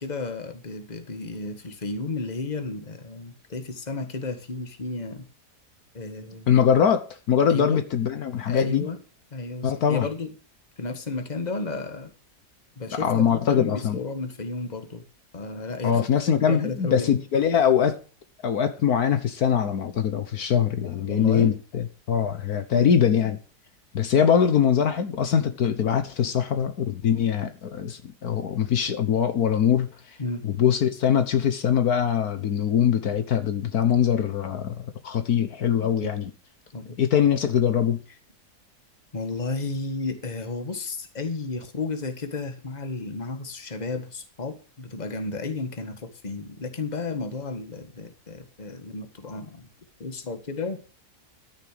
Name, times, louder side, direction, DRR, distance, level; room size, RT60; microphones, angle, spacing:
voice 1, 0.0-5.2 5.9-6.7 7.5-7.8 8.5-9.0 9.3-10.3 10.8-12.1 12.8-15.0 15.3-16.1 16.5-17.1 21.1-21.6 22.7-22.9 30.2-30.5 35.9-36.1 36.7-37.0 39.1-49.7 50.0-50.8, left 3 dB, 25° left, 1.6 m, -33 dB
voice 2, 6.5-8.9 9.6-10.1 13.0-14.0 15.8-18.0 18.4-23.4 23.9-30.2 30.4-36.3 37.0-38.0, left 8 dB, 70° left, 1.6 m, -22 dB
13.5 x 6.6 x 6.7 m
omnidirectional pair, 1.7 m